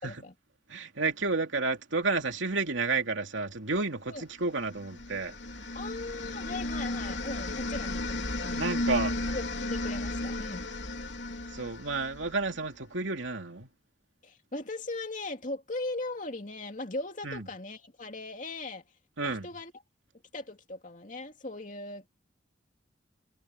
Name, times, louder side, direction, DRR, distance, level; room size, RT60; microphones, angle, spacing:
voice 1, 0.0-0.3 4.1-4.2 5.7-8.6 9.3-10.7 14.2-18.8 19.2-19.7 20.3-22.1, left 2 dB, 40° left, 2.7 m, -39 dB
voice 2, 0.7-5.3 8.6-9.1 11.5-13.7 17.2-17.5 19.2-19.5, right 3 dB, 80° right, 2.6 m, -31 dB
sound 1, 4.6-12.6, left 2 dB, 65° left, 3.4 m, -34 dB
head